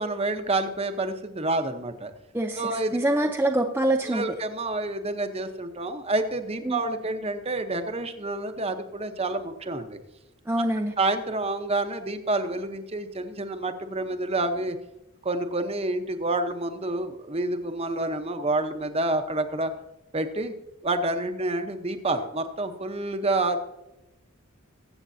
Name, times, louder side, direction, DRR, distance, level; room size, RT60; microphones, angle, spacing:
voice 1, 0.0-2.1 2.6-3.3 4.0-10.0 11.0-14.8 15.2-19.7 20.1-20.5 20.8-23.6, right 2 dB, 30° right, 8 dB, 0.9 m, -28 dB
voice 2, 2.3-4.2 6.7-6.8 10.5-10.9, right 1 dB, 10° right, 1 dB, 0.6 m, -25 dB
22.0 x 8.0 x 2.7 m, 0.95 s
head